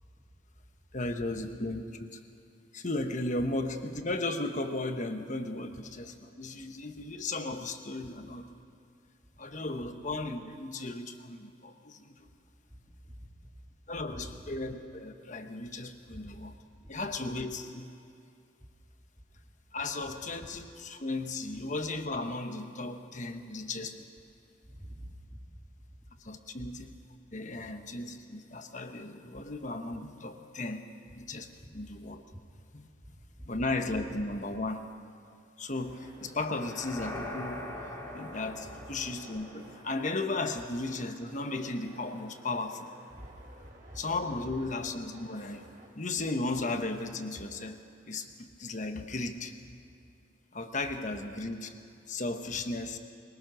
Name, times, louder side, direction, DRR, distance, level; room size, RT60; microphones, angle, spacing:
voice 1, 0.9-2.2 2.7-8.5 9.4-12.3 13.9-16.5 16.9-17.9 19.7-24.1 26.2-27.0 27.3-30.8 31.1-32.2 32.7-32.9 33.4-34.8 35.6-37.7 38.1-42.9 43.9-47.8 48.0-49.5 50.5-51.7 52.1-53.0, left 2 dB, 40° left, 7 dB, 1.2 m, -35 dB
voice 2, 12.7-13.6 14.1-14.3 16.1-16.2 16.8-16.9 24.6-25.4 26.0-26.1 26.6-26.7 31.6-31.8 32.3-32.4 33.0-33.2 43.1-43.3 43.6-44.0, equal, ahead, -2 dB, 2.2 m, -48 dB
sound 1, 35.7-45.9, right 1 dB, 45° right, 3.6 m, -55 dB
sound 2, 36.4-40.5, left 1 dB, 15° left, 2.8 m, -42 dB
22.5 x 20.0 x 6.2 m, 2.5 s
head